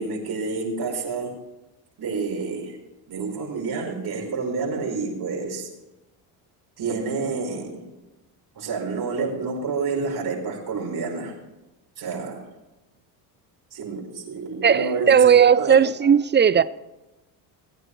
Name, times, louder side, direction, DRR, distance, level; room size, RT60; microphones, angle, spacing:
voice 1, 0.0-1.3 2.0-2.8 3.1-5.7 6.8-7.9 8.5-11.4 12.0-12.5 13.7-16.1, right 4 dB, 50° right, 5.0 m, -29 dB
voice 2, 14.6-16.6, right 7 dB, 25° right, 0.5 m, -16 dB
19.0 x 9.3 x 3.3 m
supercardioid pair, 90°, 49 cm